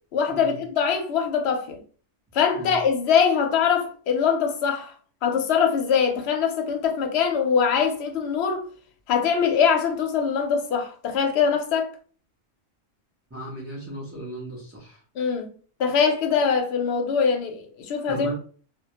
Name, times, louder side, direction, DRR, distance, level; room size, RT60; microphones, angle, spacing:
voice 1, 0.1-1.8 2.3-4.9 5.2-8.7 9.1-11.9 15.2-15.5 15.8-18.3, left 6 dB, 65° left, 0.8 m, -23 dB
voice 2, 13.3-15.0 18.1-18.3, right 2 dB, 20° right, 0.4 m, -35 dB
2.2 x 2.1 x 2.8 m
omnidirectional pair, 1.3 m